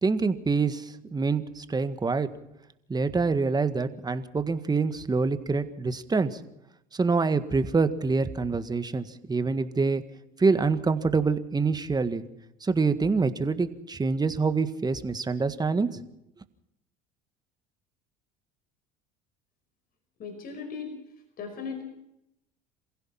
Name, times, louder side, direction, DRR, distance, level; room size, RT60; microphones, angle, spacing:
voice 1, 0.0-2.3 2.9-6.4 6.9-10.0 10.4-12.2 12.6-16.0, right 4 dB, 20° right, 11 dB, 1.7 m, -26 dB
voice 2, 20.2-21.0 21.4-21.8, left 5 dB, 45° left, 5 dB, 5.2 m, -37 dB
28.0 x 16.0 x 5.9 m, 0.81 s
hypercardioid pair, 85°, 20 cm